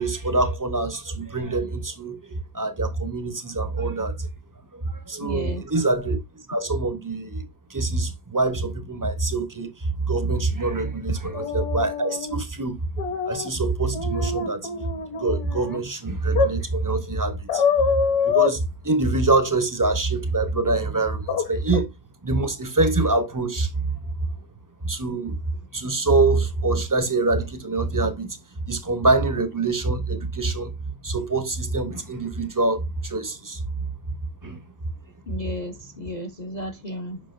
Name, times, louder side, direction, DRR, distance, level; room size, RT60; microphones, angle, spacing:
voice 1, 0.0-4.3 4.7-12.9 13.3-14.7 15.1-17.6 18.2-21.9 22.2-23.9 24.8-25.4 25.7-28.4 28.7-30.7 31.0-33.6 34.4-34.6, right 3 dB, 25° right, 0.4 m, -25 dB
voice 2, 5.2-5.6 11.2-11.4 35.3-37.2, left 1 dB, 50° left, 0.5 m, -34 dB
sound 1, 11.3-12.4 13.0-13.5 13.9-15.8 16.3-16.5 17.5-18.5 21.3-21.5 21.7-21.8, left 6 dB, 70° left, 1.7 m, -24 dB
7.2 x 5.6 x 2.5 m
omnidirectional pair, 1.7 m